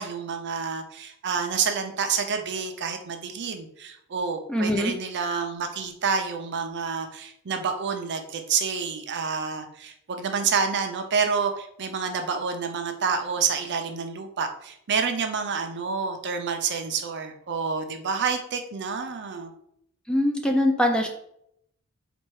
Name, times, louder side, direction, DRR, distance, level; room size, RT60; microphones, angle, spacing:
voice 1, 0.0-19.5, right 5 dB, 55° right, 6 dB, 0.6 m, -28 dB
voice 2, 4.5-4.9 20.1-21.1, left 1 dB, 5° left, 2 dB, 0.5 m, -22 dB
4.3 x 2.5 x 4.7 m, 0.72 s
head